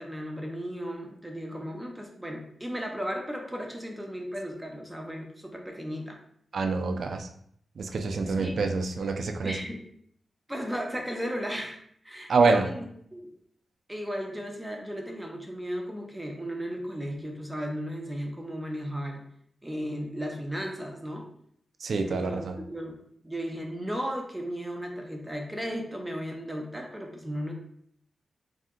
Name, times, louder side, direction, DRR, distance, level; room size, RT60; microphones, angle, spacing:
voice 1, 0.0-6.2 8.4-8.6 9.4-9.8 10.5-11.8 12.0-13.3 13.9-19.2 19.6-21.2 22.0-23.0 23.2-27.5, equal, 10° right, 1 dB, 0.7 m, -35 dB
voice 2, 6.5-7.3 7.8-9.6 12.3-12.7 21.8-22.6, right 4 dB, 75° right, 5 dB, 0.3 m, -26 dB
2.7 x 2.1 x 3.7 m, 0.66 s
cardioid pair, 55°, 0 cm